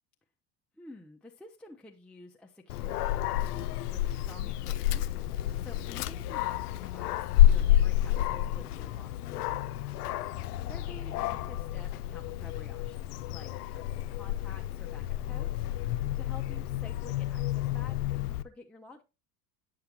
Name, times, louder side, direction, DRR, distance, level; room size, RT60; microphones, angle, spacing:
voice 1, 0.8-9.6 10.7-19.0, left 2 dB, 5° left, 0 dB, 0.6 m, -51 dB
Dog, 2.7-18.4, left 13 dB, 85° left, 0.5 m, -29 dB
9.1 x 5.7 x 2.8 m, 0.28 s
hypercardioid pair, 90°, 45 cm